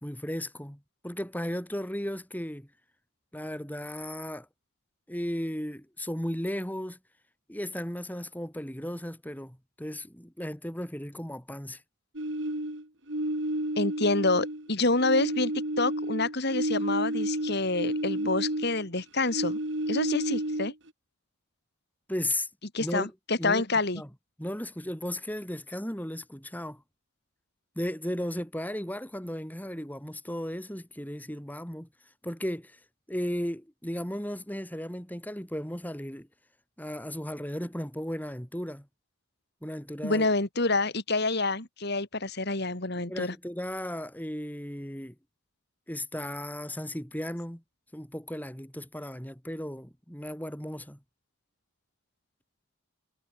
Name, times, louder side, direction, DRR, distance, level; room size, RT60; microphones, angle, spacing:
voice 1, 0.0-2.7 3.3-4.5 5.1-7.0 7.5-11.8 22.1-22.5 22.8-23.1 23.4-23.6 24.0-24.1 24.4-26.8 27.8-31.9 32.2-32.8 33.1-36.3 36.8-38.9 39.6-40.3 43.1-45.2 45.9-47.6 47.9-51.0, left 1 dB, 10° left, 3.6 m, -35 dB
sound 1, 12.1-14.7 14.9-18.9 19.2-20.9, right 1 dB, 60° right, 4.0 m, -31 dB
voice 2, 13.8-15.5 15.8-19.6 19.9-20.7 22.7-24.0 40.0-43.3, left 2 dB, 50° left, 2.9 m, -27 dB
head